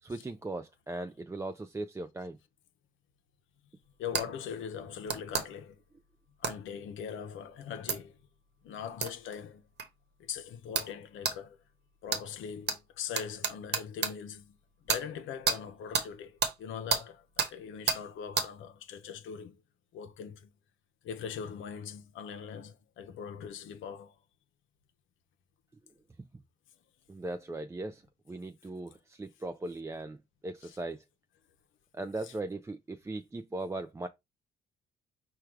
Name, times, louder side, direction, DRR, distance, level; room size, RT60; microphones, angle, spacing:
voice 1, 0.0-2.4 27.1-28.0 28.3-30.2 30.4-31.0 31.9-34.1, right 2 dB, 15° right, 0.4 m, -38 dB
voice 2, 4.0-5.8 6.4-8.2 8.6-9.6 10.2-11.6 12.0-14.5 14.8-19.6 19.9-20.5 21.0-24.1 30.6-30.8 32.2-32.3, left 7 dB, 80° left, 0.7 m, -41 dB
sound 1, 4.1-4.3 5.1-5.5 6.4-6.6 7.9-8.0 9.0-9.1 9.8-9.9 10.7-10.9 11.2-11.4 12.1-12.2 12.7-12.8 13.1-14.1 14.9-15.0 15.5-15.6 15.9-16.1 16.4-16.5 16.9-17.0 17.4-17.5 17.9-18.0 18.4-18.5, right 6 dB, 60° right, 1.0 m, -29 dB
4.9 x 2.3 x 4.5 m
cardioid pair, 90°, 20 cm